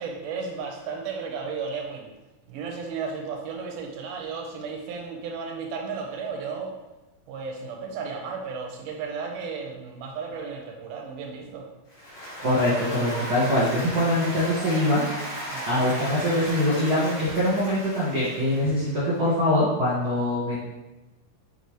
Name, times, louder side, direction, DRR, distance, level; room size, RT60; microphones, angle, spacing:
voice 1, 0.0-2.1 2.5-6.8 7.3-11.7 15.5-16.0, right 5 dB, 85° right, 1 dB, 2.5 m, -34 dB
Applause, 11.9-19.1, equal, 75° left, 3.7 m, -36 dB
voice 2, 12.4-15.1 15.7-20.6, left 1 dB, 40° right, -9 dB, 2.1 m, -23 dB
6.7 x 6.0 x 3.2 m, 1.1 s
omnidirectional pair, 3.7 m